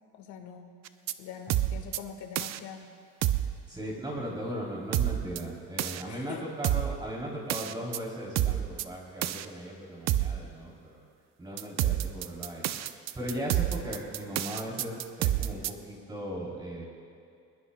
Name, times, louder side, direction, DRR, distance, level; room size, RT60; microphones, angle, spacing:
voice 1, 0.1-0.7 1.2-2.9 6.1-6.5, left 7 dB, 80° left, 4 dB, 1.7 m, -43 dB
sound 1, 0.9-1.1 1.5-2.0 2.4-2.6 3.2-3.5 4.9-5.4 5.8-6.0 6.6-7.0 7.5-8.0 8.4-8.8 9.2-9.5 10.1-10.4 11.6-15.7, right 13 dB, 65° right, 0.6 m, -28 dB
voice 2, 3.7-11.0 11.4-16.8, equal, 15° right, -4 dB, 3.2 m, -38 dB
23.0 x 21.0 x 2.2 m, 2.4 s
cardioid pair, 135°, 29 cm